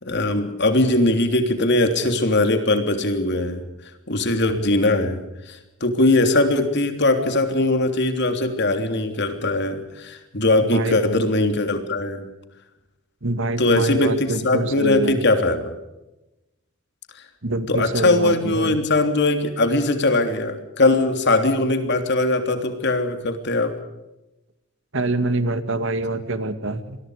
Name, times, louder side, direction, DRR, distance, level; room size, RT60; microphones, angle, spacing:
voice 1, 0.0-3.6 4.1-5.2 5.5-12.2 13.6-15.8 17.7-23.7, left 2 dB, 55° left, 7 dB, 3.3 m, -20 dB
voice 2, 13.2-15.2 17.4-18.7 24.9-27.0, right 2 dB, 65° right, 11 dB, 2.1 m, -25 dB
27.5 x 22.5 x 5.0 m, 0.97 s
head